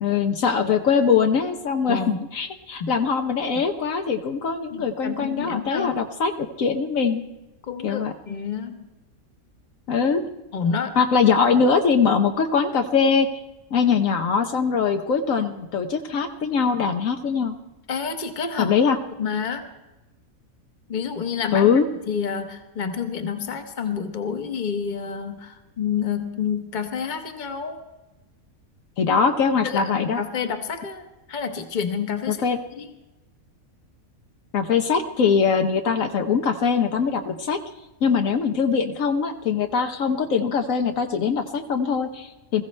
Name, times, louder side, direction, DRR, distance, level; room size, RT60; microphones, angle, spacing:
voice 1, 0.0-7.2 7.8-8.1 9.9-10.2 11.0-13.3 13.7-17.5 18.6-19.0 21.5-21.8 29.0-30.2 32.4-32.6 34.5-37.6 38.0-42.6, left 6 dB, 70° left, 6 dB, 1.2 m, -22 dB
voice 2, 1.9-2.2 2.8-2.9 3.5-3.6 4.7-6.0 7.7-8.9 10.5-11.0 17.9-18.7 19.2-19.7 20.9-21.7 22.1-27.8 29.6-32.4 32.8-32.9, left 6 dB, 35° left, 7 dB, 1.1 m, -29 dB
21.0 x 15.0 x 3.3 m, 1.0 s
omnidirectional pair, 1.5 m